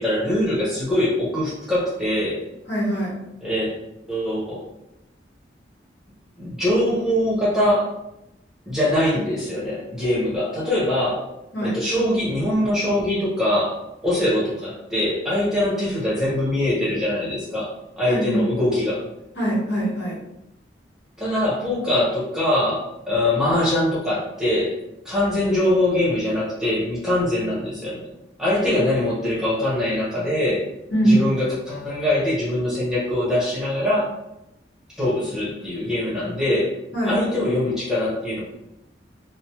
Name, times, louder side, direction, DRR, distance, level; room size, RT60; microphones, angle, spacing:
voice 1, 0.0-2.4 3.4-3.7 4.1-4.6 6.4-7.9 8.7-11.2 11.6-13.8 14.0-19.0 21.2-24.8 25.0-28.1 28.4-30.6 31.0-34.1 34.9-36.7 37.0-38.4, left 1 dB, 5° right, -7 dB, 0.8 m, -23 dB
voice 2, 2.7-3.1 11.5-11.7 18.1-18.4 19.4-20.2 30.9-31.2 36.9-37.1, right 1 dB, 70° left, -5 dB, 1.1 m, -21 dB
3.1 x 2.0 x 2.8 m, 0.86 s
head